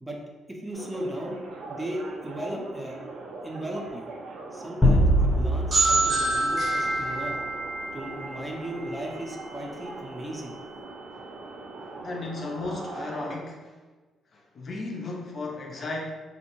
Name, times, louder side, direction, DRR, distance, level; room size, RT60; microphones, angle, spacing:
voice 1, 0.5-1.4 1.6-3.0 3.4-4.1 4.5-7.4 7.9-10.5, right 1 dB, 10° right, -1 dB, 0.5 m, -36 dB
sound 1, 0.7-13.4, right 3 dB, 75° right, 0.5 m, -41 dB
sound 2, 4.8-7.4, equal, 10° left, 0.8 m, -23 dB
sound 3, 5.7-9.4, right 2 dB, 50° right, 0.7 m, -27 dB
voice 2, 12.0-13.8 14.3-16.1, left 2 dB, 50° left, 0 dB, 0.4 m, -35 dB
2.6 x 2.1 x 2.9 m, 1.3 s
cardioid pair, 90°, 0 cm